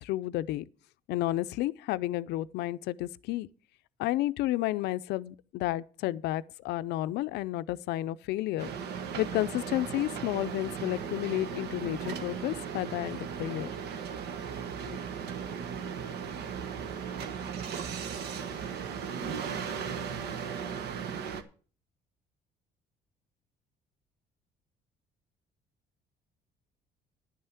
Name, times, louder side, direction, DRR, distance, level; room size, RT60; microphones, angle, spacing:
voice 1, 0.0-0.6 1.1-3.5 4.0-8.7 9.2-13.7 14.9-15.0, left 15 dB, 80° left, 0.5 m, -31 dB
sound 1, 8.6-21.4, right 7 dB, 75° right, 1.2 m, -37 dB
11.0 x 5.6 x 8.1 m
cardioid pair, 110°, 17 cm